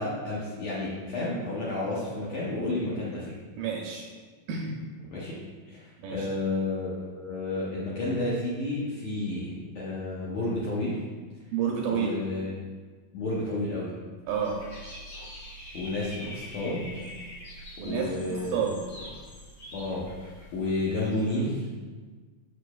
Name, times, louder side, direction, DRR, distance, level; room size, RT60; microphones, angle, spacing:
voice 1, 0.0-3.4 5.1-5.4 5.7-5.8 6.1-11.0 11.9-12.5 13.1-14.0 15.7-16.9 17.8-18.6 19.7-21.7, left 2 dB, 70° left, -7 dB, 1.6 m, -31 dB
voice 2, 3.6-4.0 4.5-4.8 6.0-6.3 11.5-12.1 14.3-14.6 17.8-18.1 18.5-18.7, right 7 dB, 80° right, -1 dB, 2.0 m, -29 dB
Dog / Bird, 14.3-21.3, equal, 50° left, 1.6 m, -44 dB
6.7 x 6.6 x 2.3 m, 1.4 s
omnidirectional pair, 4.2 m